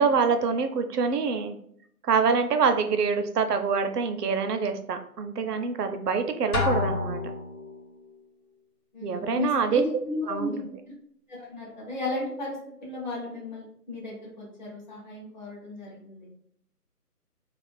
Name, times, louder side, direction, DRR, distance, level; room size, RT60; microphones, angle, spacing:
voice 1, 0.0-1.5 2.0-7.2 9.0-9.8 10.3-10.5, right 5 dB, 75° right, 7 dB, 0.6 m, -25 dB
Drum, 6.5-7.7, left 3 dB, 75° left, 0.9 m, -28 dB
voice 2, 8.9-10.6 10.9-11.0 11.3-16.3, left 2 dB, 30° left, -5 dB, 0.7 m, -34 dB
2.4 x 2.4 x 3.2 m, 0.67 s
figure-of-eight pair, 160°, 47 cm